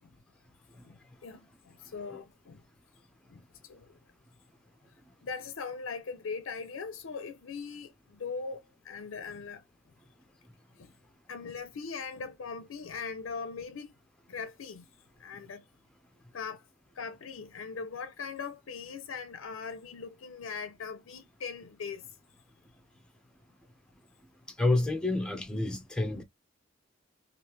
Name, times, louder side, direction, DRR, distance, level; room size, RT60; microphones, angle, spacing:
voice 1, 0.8-2.6 3.3-4.0 5.2-9.6 10.8-10.9 11.3-13.9 14.3-14.9 15.2-15.6 16.3-16.7 16.9-22.1, left 5 dB, 75° left, 0.5 m, -40 dB
voice 2, 24.6-26.2, left 2 dB, 5° left, 0.6 m, -28 dB
3.2 x 2.5 x 2.9 m
head